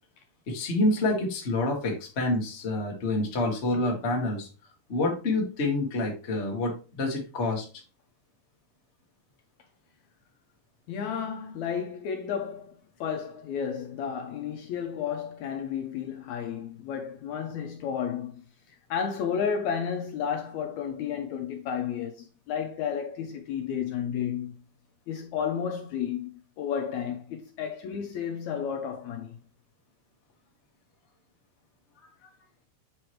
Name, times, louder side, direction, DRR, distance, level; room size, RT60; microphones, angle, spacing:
voice 1, 0.5-4.5 4.9-7.7, left 2 dB, 35° left, 1.0 m, -27 dB
voice 2, 10.9-18.4 18.7-24.5 25.1-26.3 26.6-29.4, left 7 dB, 75° left, 1.8 m, -32 dB
7.7 x 4.6 x 3.1 m
omnidirectional pair, 3.8 m